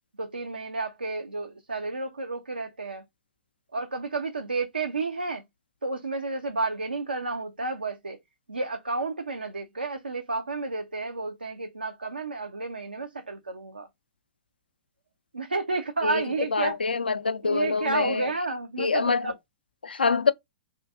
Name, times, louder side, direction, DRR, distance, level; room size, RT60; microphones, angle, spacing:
voice 1, 0.2-3.0 3.7-5.4 5.8-8.2 8.5-13.9 15.3-16.8 17.4-19.3, right 3 dB, 80° right, 0.4 m, -31 dB
voice 2, 16.5-18.3 18.8-19.3 19.8-20.3, left 4 dB, 75° left, 0.3 m, -25 dB
2.5 x 2.5 x 3.4 m
figure-of-eight pair, 105°, 5 cm